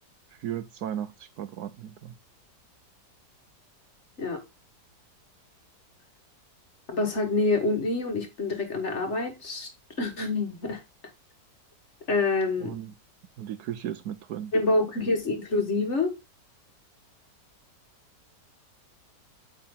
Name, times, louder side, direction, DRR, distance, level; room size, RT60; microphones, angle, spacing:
voice 1, 0.4-2.1 12.6-12.9 13.4-14.5, right 10 dB, 70° right, 1.1 m, -35 dB
voice 2, 6.9-9.7 10.0-10.8 12.1-12.7 14.5-16.1, left 2 dB, 45° left, 1.6 m, -26 dB
8.4 x 4.0 x 3.7 m
omnidirectional pair, 1.9 m